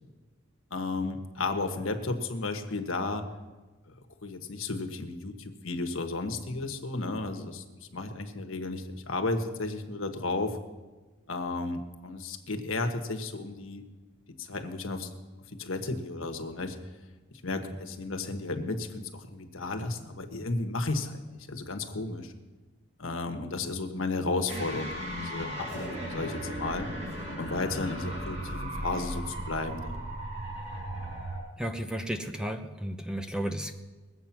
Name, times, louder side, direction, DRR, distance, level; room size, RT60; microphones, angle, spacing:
voice 1, 0.7-3.3 3.9-4.0 4.2-7.6 7.9-10.6 11.3-13.8 14.4-15.1 15.5-16.8 17.4-22.3 23.0-26.9 27.3-30.0, left 3 dB, 75° left, 6 dB, 1.4 m, -33 dB
sound 1, 24.5-31.4, right 1 dB, 35° right, 4.8 m, -36 dB
voice 2, 31.6-33.7, right 1 dB, 5° right, 6 dB, 0.7 m, -33 dB
21.0 x 8.1 x 5.9 m, 1.3 s
head